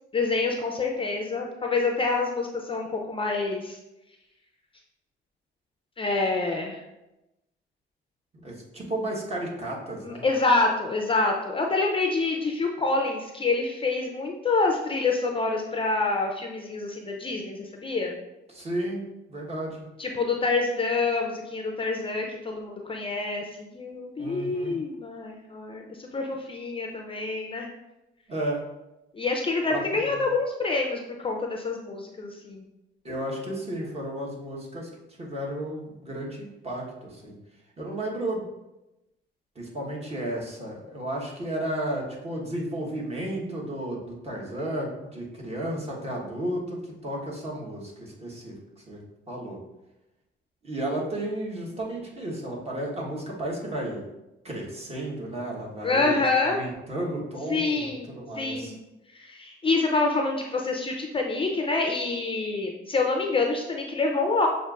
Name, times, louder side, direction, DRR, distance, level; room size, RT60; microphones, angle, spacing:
voice 1, 0.1-3.8 6.0-6.8 10.0-18.2 20.0-27.7 29.1-32.7 55.8-56.6 57.5-58.1 58.3-58.8 59.1-64.5, left 3 dB, 25° left, 2 dB, 0.5 m, -27 dB
voice 2, 8.4-10.2 18.5-19.0 19.3-19.8 24.2-24.8 28.3-28.6 29.7-30.2 33.0-34.9 35.2-37.4 37.8-38.5 39.5-48.6 48.9-49.0 49.3-49.6 50.6-54.0 54.4-57.9 58.2-58.7, right 1 dB, 30° right, -2 dB, 1.2 m, -33 dB
6.4 x 2.5 x 2.4 m, 0.95 s
cardioid pair, 90°, 20 cm